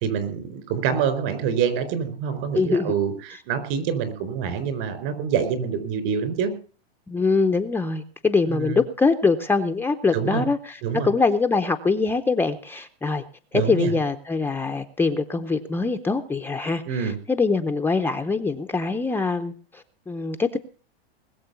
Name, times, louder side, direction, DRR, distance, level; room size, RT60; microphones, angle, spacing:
voice 1, 0.0-6.5 8.5-8.8 10.1-10.4 10.8-11.1 13.5-13.9 16.9-17.1, right 7 dB, 55° right, 11 dB, 4.3 m, -26 dB
voice 2, 2.5-2.9 7.1-13.2 13.5-20.6, left 4 dB, 5° left, 4 dB, 0.6 m, -23 dB
20.5 x 7.4 x 6.9 m, 0.40 s
hypercardioid pair, 130°, 31 cm